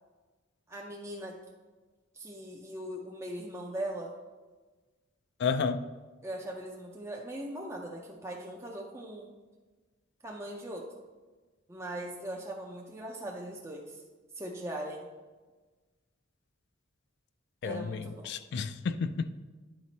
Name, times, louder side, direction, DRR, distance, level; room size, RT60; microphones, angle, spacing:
voice 1, 0.7-1.4 2.1-4.1 6.2-9.3 10.2-10.9 11.7-14.0 14.3-15.1 17.6-18.4, right 1 dB, 15° right, -1 dB, 0.5 m, -40 dB
voice 2, 5.4-5.8 17.6-19.3, left 5 dB, 60° left, 13 dB, 0.4 m, -31 dB
9.7 x 4.1 x 4.0 m, 1.3 s
head